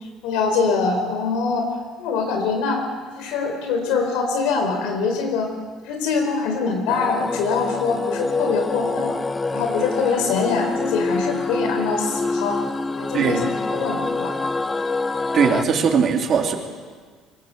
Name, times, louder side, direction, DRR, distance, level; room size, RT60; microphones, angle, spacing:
voice 1, 0.2-1.7 2.0-2.8 3.2-5.5 5.8-9.1 9.5-12.6 12.9-14.3, left 4 dB, 90° left, 3 dB, 4.5 m, -23 dB
sound 1, 6.9-15.6, left 3 dB, 15° left, 0.6 m, -26 dB
voice 2, 13.1-13.4 15.3-16.5, right 6 dB, 40° right, 3 dB, 3.0 m, -19 dB
23.5 x 20.0 x 7.9 m, 1.5 s
cardioid pair, 140°, 0 cm